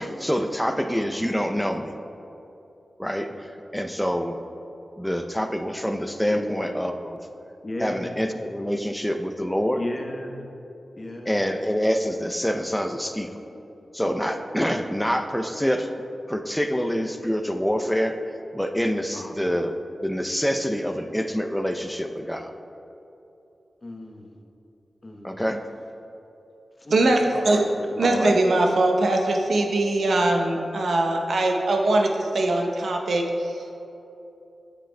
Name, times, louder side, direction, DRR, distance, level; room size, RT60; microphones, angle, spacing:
voice 1, 0.0-1.9 3.0-4.4 5.0-7.2 7.8-9.8 11.3-13.4 13.9-15.9 16.3-18.1 18.5-22.5 25.2-25.6 28.0-28.3, equal, 5° left, 5 dB, 0.5 m, -26 dB
voice 2, 6.3-6.8 7.6-8.3 9.7-10.5 11.0-11.4 19.1-19.4 23.8-24.3 25.0-25.4 26.8-27.1 27.9-28.0, left 1 dB, 35° left, 2 dB, 0.9 m, -35 dB
voice 3, 26.9-27.7 28.0-33.8, right 2 dB, 75° right, 2 dB, 0.7 m, -22 dB
8.9 x 7.4 x 2.2 m, 2.9 s
cardioid pair, 40°, 0 cm